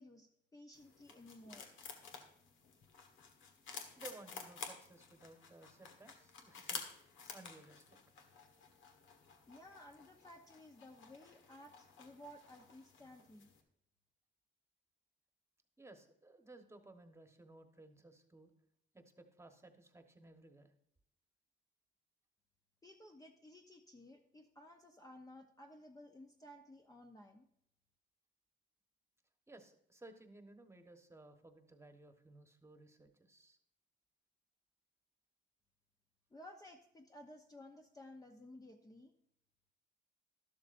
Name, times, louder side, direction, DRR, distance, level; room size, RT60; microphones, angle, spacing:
voice 1, 0.0-1.7 9.5-13.5 22.8-27.5 36.3-39.1, left 1 dB, 15° left, 3 dB, 0.8 m, -56 dB
sound 1, 0.7-13.6, left 5 dB, 75° left, 1.4 m, -52 dB
voice 2, 4.0-6.9 7.3-8.0 15.8-18.5 18.9-20.7 29.5-33.6, right 2 dB, 15° right, 6 dB, 1.2 m, -58 dB
12.0 x 12.0 x 2.6 m, 0.74 s
cardioid pair, 90°, 20 cm